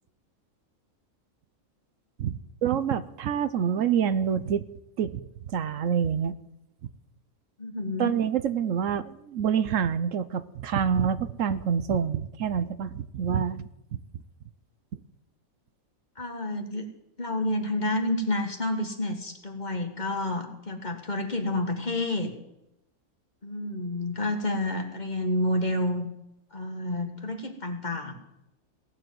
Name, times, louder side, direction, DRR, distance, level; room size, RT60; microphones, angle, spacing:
voice 1, 2.2-4.6 5.0-6.4 8.0-13.7 14.9-15.0, right 8 dB, 75° right, 14 dB, 1.1 m, -27 dB
voice 2, 7.6-8.2 16.2-16.9 17.2-22.3 23.4-26.1 26.5-28.2, left 1 dB, 35° left, 5 dB, 1.8 m, -29 dB
17.5 x 7.2 x 9.3 m, 0.85 s
omnidirectional pair, 1.4 m